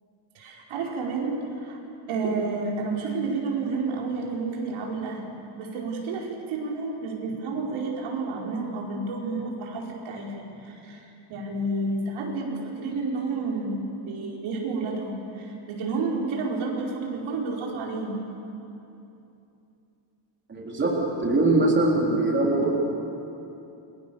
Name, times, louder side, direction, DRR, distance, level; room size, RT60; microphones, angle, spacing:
voice 1, 0.3-1.8 2.1-5.2 5.5-18.1, right 3 dB, 70° right, -2 dB, 5.1 m, -30 dB
voice 2, 20.5-22.7, right 2 dB, 20° right, -3 dB, 3.6 m, -22 dB
30.0 x 23.0 x 7.1 m, 2.8 s
cardioid pair, 175°, 49 cm